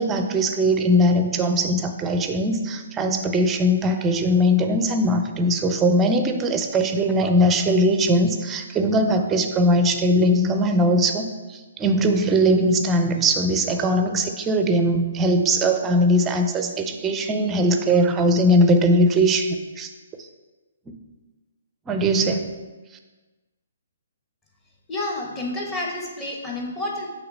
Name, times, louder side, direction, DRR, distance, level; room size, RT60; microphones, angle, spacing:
voice 1, 0.0-19.9 20.9-21.0 21.9-22.5, equal, 15° right, 6 dB, 0.5 m, -20 dB
voice 2, 24.9-27.1, left 2 dB, 15° left, -2 dB, 1.1 m, -29 dB
5.7 x 3.2 x 5.4 m, 1.3 s
figure-of-eight pair, 130°, 0 cm